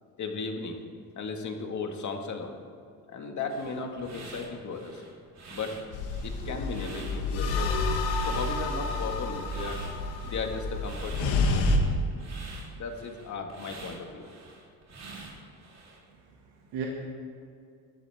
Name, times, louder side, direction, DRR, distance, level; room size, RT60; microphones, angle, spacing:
voice 1, 0.2-0.8 1.2-2.5 3.1-5.1 5.5-5.8 6.2-7.9 8.2-9.8 10.2-11.5 12.7-14.3, left 4 dB, 45° left, 3 dB, 2.0 m, -36 dB
sound 1, 3.5-16.0, right 3 dB, 40° right, 3.6 m, -47 dB
sound 2, 5.9-11.8, left 3 dB, 85° left, 2.0 m, -29 dB
voice 2, 16.1-16.9, right 7 dB, 80° right, -2 dB, 2.1 m, -38 dB
21.5 x 14.0 x 3.6 m, 2.3 s
cardioid pair, 120°, 42 cm